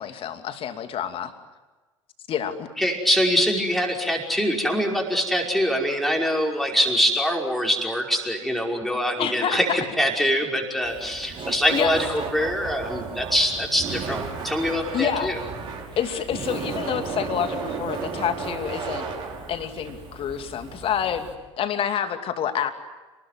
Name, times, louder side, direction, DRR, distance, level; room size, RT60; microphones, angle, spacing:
voice 1, 0.0-1.3 2.3-2.7 9.2-9.6 11.7-12.0 14.9-15.3 16.0-19.1 19.5-21.3 21.6-22.7, left 9 dB, 35° left, 8 dB, 2.6 m, -27 dB
voice 2, 2.8-15.4, equal, ahead, 0 dB, 5.4 m, -24 dB
Laughter, 10.8-21.3, right 5 dB, 30° right, 6.1 m, -34 dB
29.5 x 20.5 x 9.6 m, 1.2 s
figure-of-eight pair, 75°, 17 cm